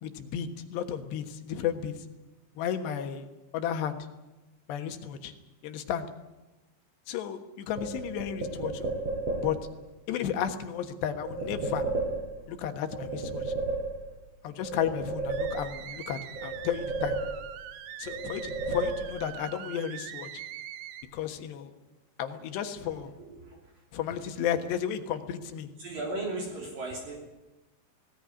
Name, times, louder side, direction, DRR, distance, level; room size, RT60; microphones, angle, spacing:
voice 1, 0.0-2.0 2.6-3.3 3.5-4.0 4.7-5.3 5.6-6.1 7.1-8.9 9.4-9.6 10.1-11.9 12.5-13.5 14.4-17.2 18.0-20.3 21.1-21.7 22.2-23.1 23.9-25.7, left 9 dB, 75° left, 7 dB, 3.5 m, -33 dB
sound 1, 7.8-9.7 11.2-12.6 12.9-14.3 14.6-16.0 16.3-17.7 18.0-19.4, right 3 dB, 35° right, 5.8 m, -33 dB
sound 2, 15.3-21.0, right 10 dB, 75° right, 3.3 m, -43 dB
voice 2, 23.2-23.6 24.1-24.2 25.8-27.2, right 2 dB, 55° right, -1 dB, 4.6 m, -36 dB
19.0 x 18.0 x 9.7 m, 1.0 s
omnidirectional pair, 5.1 m